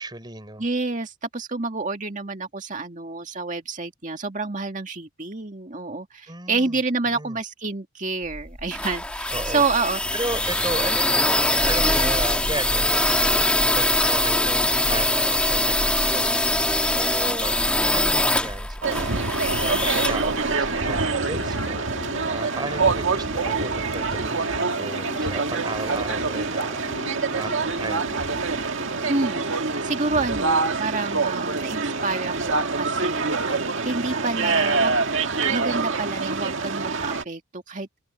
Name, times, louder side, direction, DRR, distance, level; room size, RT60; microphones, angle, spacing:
voice 1, 0.0-0.6 6.3-6.8 7.1-7.4 9.3-9.6 10.1-16.7 16.9-19.2 19.5-21.9 22.2-28.0, right 2 dB, 20° right, 3.7 m, -35 dB
voice 2, 0.6-10.0 29.1-33.6 33.8-35.0 35.5-38.0, right 3 dB, 35° right, 2.2 m, -28 dB
sound 1, 8.3-21.1, left 1 dB, 5° left, 1.3 m, -23 dB
sound 2, 18.8-37.2, right 4 dB, 60° right, 2.0 m, -25 dB
sound 3, 18.9-29.2, left 2 dB, 65° left, 2.8 m, -41 dB
head